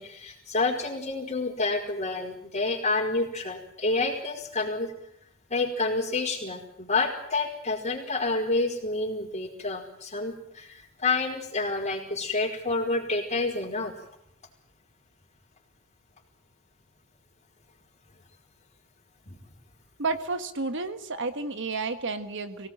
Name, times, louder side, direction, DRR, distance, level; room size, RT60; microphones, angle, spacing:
voice 1, 0.0-4.9 5.5-14.0 19.3-19.4, left 3 dB, 30° left, 2 dB, 4.8 m, -29 dB
voice 2, 20.0-22.7, right 3 dB, 55° right, 9 dB, 1.6 m, -31 dB
23.5 x 18.0 x 9.1 m, 0.75 s
head